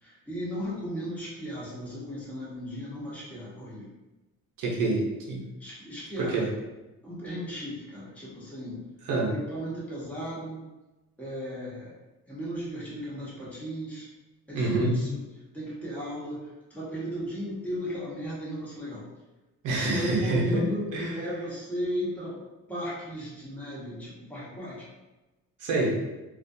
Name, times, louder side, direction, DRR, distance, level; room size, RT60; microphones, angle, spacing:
voice 1, 0.0-3.9 5.6-6.4 7.0-8.9 9.3-10.6 11.2-11.9 12.3-14.1 14.5-15.2 15.5-16.4 16.7-19.1 19.8-22.4 22.7-24.9, equal, 5° left, -8 dB, 0.9 m, -35 dB
voice 2, 4.6-5.5 6.2-6.5 9.0-9.3 14.5-15.0 19.6-21.2 25.6-26.0, right 2 dB, 85° right, -3 dB, 0.7 m, -27 dB
2.4 x 2.1 x 2.6 m, 1.1 s
cardioid pair, 90°, 30 cm